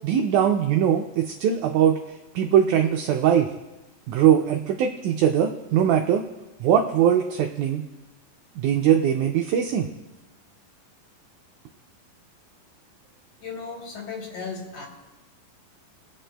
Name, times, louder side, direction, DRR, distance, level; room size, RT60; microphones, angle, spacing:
voice 1, 0.0-2.0 2.4-3.5 4.1-6.3 6.6-7.8 8.6-9.9, right 9 dB, 85° right, 4 dB, 1.8 m, -21 dB
voice 2, 13.4-14.9, left 5 dB, 70° left, -1 dB, 3.4 m, -35 dB
22.0 x 8.3 x 2.2 m, 1.1 s
omnidirectional pair, 4.1 m